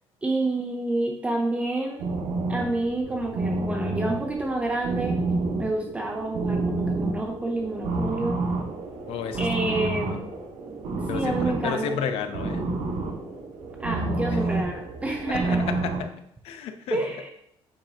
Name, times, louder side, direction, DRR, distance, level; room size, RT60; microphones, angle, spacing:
voice 1, 0.2-2.1 2.5-5.2 5.6-8.4 9.4-10.3 11.0-12.0 13.8-15.7 16.9-17.3, right 2 dB, 15° right, 2 dB, 0.6 m, -28 dB
sound 1, 2.0-16.0, right 3 dB, 85° right, 1.7 m, -29 dB
voice 2, 9.1-10.2 11.1-12.7 15.3-16.1 16.4-17.0, left 7 dB, 70° left, 7 dB, 0.8 m, -32 dB
8.3 x 6.0 x 2.9 m, 0.72 s
cardioid pair, 155°, 10 cm